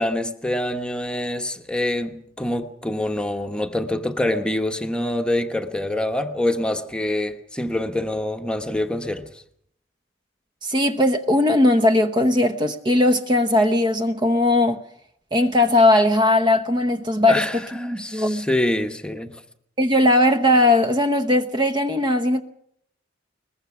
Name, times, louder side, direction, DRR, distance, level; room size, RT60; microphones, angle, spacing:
voice 1, 0.0-9.3 17.3-19.4, left 1 dB, 5° left, 1.1 m, -25 dB
voice 2, 10.6-14.8 15.3-17.5 17.8-18.5 19.8-22.4, left 1 dB, 25° right, 0.9 m, -18 dB
22.0 x 20.5 x 6.1 m
head